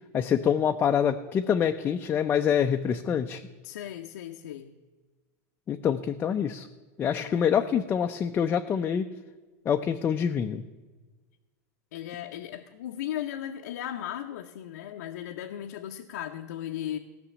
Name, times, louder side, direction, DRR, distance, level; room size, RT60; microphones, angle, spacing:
voice 1, 0.1-3.4 5.7-6.7 7.0-9.1 9.7-10.6, left 8 dB, 20° left, 5 dB, 0.4 m, -26 dB
voice 2, 3.6-4.7 7.1-7.9 11.9-17.0, left 11 dB, 90° left, 2 dB, 0.8 m, -37 dB
16.0 x 6.0 x 8.5 m, 1.3 s
supercardioid pair, 150°, 9 cm